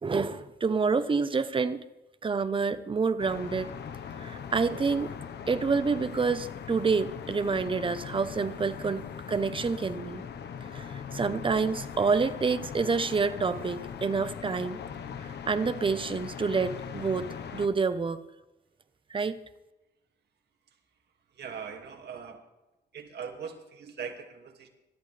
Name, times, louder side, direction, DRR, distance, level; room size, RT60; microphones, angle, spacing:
voice 1, 0.0-1.8 2.2-3.7 4.2-5.1 5.5-10.2 10.7-10.9 11.1-14.8 15.2-18.2 19.1-19.4, right 4 dB, 30° right, 11 dB, 0.9 m, -28 dB
sound 1, 3.2-17.7, left 7 dB, 70° left, 1.2 m, -40 dB
voice 2, 21.4-22.5 22.9-24.7, right 6 dB, 65° right, 3 dB, 2.3 m, -40 dB
26.0 x 13.0 x 3.4 m, 1.0 s
cardioid pair, 105°, 18 cm